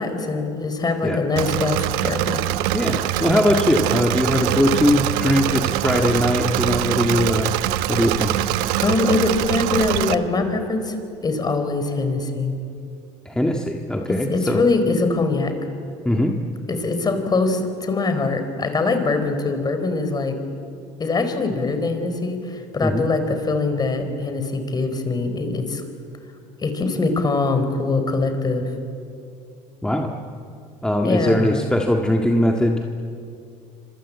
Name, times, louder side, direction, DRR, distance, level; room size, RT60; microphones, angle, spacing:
voice 1, 0.0-2.4 8.8-11.0 11.2-12.5 14.1-15.5 16.7-20.4 21.0-25.8 26.6-28.7 31.0-31.6, left 3 dB, 25° left, 8 dB, 4.4 m, -23 dB
Engine / Mechanisms, 1.4-10.1, right 14 dB, 80° right, 1.1 m, -23 dB
voice 2, 2.7-7.5 7.9-8.5 13.3-14.6 16.1-16.3 22.8-23.1 29.8-30.1 30.8-32.9, left 1 dB, 5° left, 2 dB, 1.9 m, -20 dB
27.0 x 26.0 x 8.4 m, 2.5 s
supercardioid pair, 105°, 15 cm